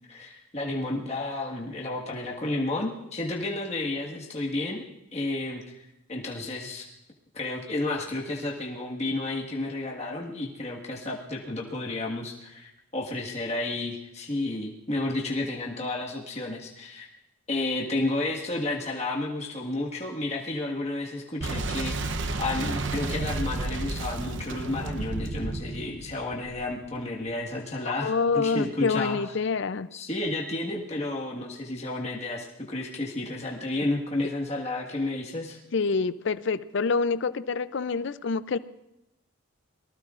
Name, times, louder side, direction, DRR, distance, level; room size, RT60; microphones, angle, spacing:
voice 1, 0.1-4.8 5.1-5.6 6.1-6.9 7.3-17.1 17.5-29.2 29.9-35.6, left 2 dB, 30° left, -2 dB, 1.6 m, -31 dB
Boom, 21.4-27.0, right 2 dB, 60° right, 0.8 m, -32 dB
voice 2, 28.0-29.9 35.7-38.6, left 4 dB, 60° left, 15 dB, 0.5 m, -26 dB
24.5 x 19.5 x 2.5 m, 0.90 s
head